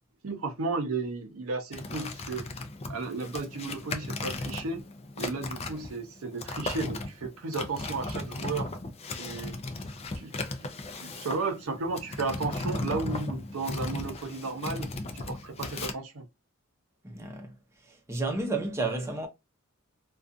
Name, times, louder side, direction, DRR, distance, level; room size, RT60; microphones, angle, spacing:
voice 1, 0.2-2.4 2.9-4.8 5.2-8.7 9.1-9.6 10.1-10.3 10.6-10.7 11.0-16.2, right 3 dB, 75° right, 0.6 m, -34 dB
sound 1, 1.7-15.9, left 2 dB, 30° left, 0.4 m, -36 dB
voice 2, 17.0-17.5 18.1-19.3, right 2 dB, 15° right, 0.6 m, -31 dB
2.5 x 2.3 x 2.4 m
head